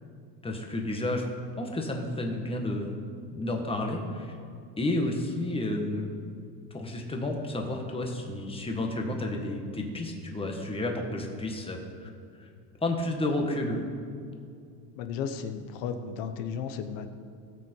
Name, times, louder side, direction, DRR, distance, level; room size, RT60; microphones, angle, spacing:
voice 1, 0.4-1.3 1.6-3.0 3.3-4.3 4.8-6.1 6.7-12.1 12.4-12.5 12.8-13.8, left 1 dB, 10° left, 2 dB, 1.5 m, -31 dB
voice 2, 14.9-17.1, left 7 dB, 65° left, 8 dB, 1.1 m, -34 dB
18.0 x 6.2 x 4.6 m, 2.4 s
supercardioid pair, 125°, 47 cm